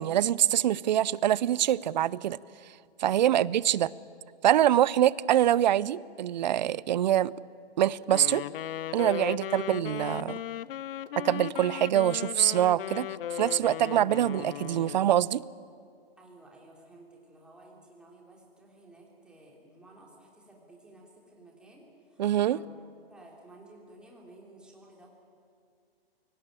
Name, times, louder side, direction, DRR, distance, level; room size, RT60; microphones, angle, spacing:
voice 1, 0.0-2.4 3.0-3.9 4.4-7.3 7.8-8.4 8.9-10.4 11.2-13.1 13.3-15.4 22.2-22.6, right 11 dB, 45° right, 21 dB, 0.5 m, -24 dB
Wind instrument woodwind instrument, 8.0-15.3, left 11 dB, 60° left, 0.5 m, -37 dB
voice 2, 16.2-22.7 23.1-25.1, right 2 dB, 5° right, -2 dB, 3.2 m, -54 dB
24.0 x 17.5 x 8.9 m, 2.4 s
hypercardioid pair, 155°, 31 cm